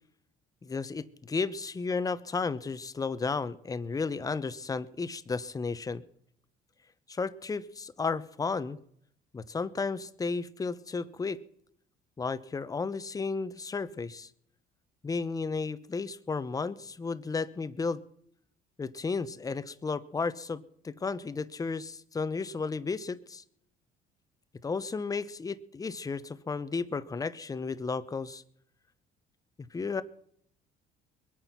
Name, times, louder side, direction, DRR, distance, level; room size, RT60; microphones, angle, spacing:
voice 1, 0.6-6.0 7.1-8.8 9.3-11.4 12.2-14.3 15.0-18.0 18.8-23.4 24.6-28.4 29.7-30.0, left 4 dB, 20° left, 14 dB, 0.8 m, -33 dB
22.0 x 9.1 x 5.9 m, 0.69 s
cardioid pair, 110°, 17 cm